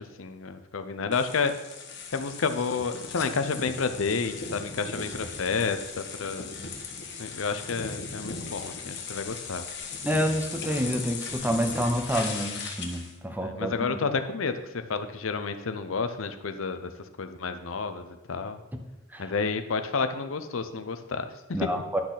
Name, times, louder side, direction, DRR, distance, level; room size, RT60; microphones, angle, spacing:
voice 1, 0.0-1.5 2.1-6.5 7.2-9.7 13.4-14.6 14.9-16.9 17.2-18.6 19.2-21.7, left 4 dB, 75° left, 9 dB, 0.6 m, -30 dB
sound 1, 1.1-13.1, left 5 dB, 55° left, 1.2 m, -38 dB
voice 2, 10.0-14.0 19.1-19.3 21.5-22.0, equal, 10° right, 5 dB, 0.8 m, -28 dB
10.5 x 6.2 x 4.0 m, 0.99 s
head